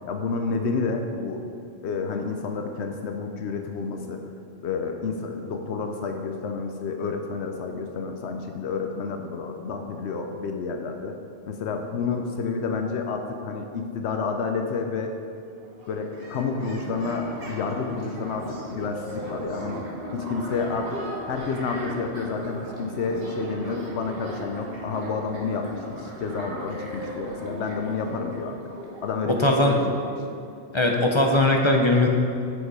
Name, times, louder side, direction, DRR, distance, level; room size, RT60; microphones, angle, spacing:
voice 1, 0.1-1.4 1.8-4.2 4.6-11.1 11.5-15.1 15.9-19.9 20.1-21.0 21.3-28.6 29.0-30.1, left 4 dB, 80° left, 4 dB, 0.9 m, -29 dB
sound 1, 15.6-30.2, right 1 dB, 60° right, 1.4 m, -38 dB
voice 2, 29.4-29.7 30.7-32.1, left 1 dB, 35° left, 1 dB, 0.6 m, -19 dB
8.1 x 6.3 x 4.8 m, 2.5 s
omnidirectional pair, 1.1 m